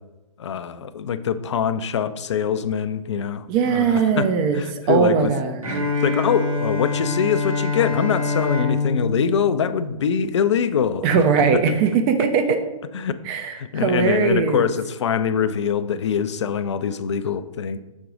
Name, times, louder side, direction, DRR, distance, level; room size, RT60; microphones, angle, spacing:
voice 1, 0.4-5.3 6.0-11.1 11.3-11.4 12.9-13.2 13.6-17.8, left 7 dB, 55° left, 13 dB, 0.4 m, -24 dB
voice 2, 3.5-5.7 11.0-12.6 13.2-14.7, right 6 dB, 20° right, 7 dB, 0.4 m, -20 dB
Bowed string instrument, 5.6-10.5, left 3 dB, 75° right, 1.5 m, -25 dB
6.1 x 4.6 x 3.8 m, 1.1 s
figure-of-eight pair, 125°, 18 cm